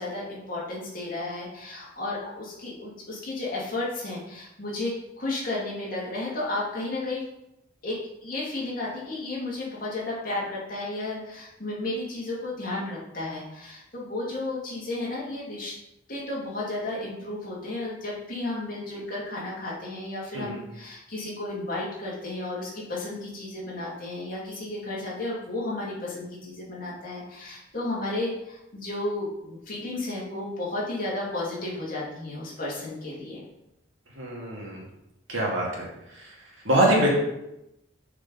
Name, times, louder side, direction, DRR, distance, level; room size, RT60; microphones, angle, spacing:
voice 1, 0.0-7.2 7.8-15.8 16.1-33.4, left 2 dB, 45° left, -5 dB, 2.5 m, -33 dB
voice 2, 34.2-34.8 35.3-35.9 36.1-36.3 36.6-37.1, right 1 dB, 70° right, -3 dB, 2.3 m, -24 dB
6.6 x 4.9 x 5.5 m, 0.87 s
head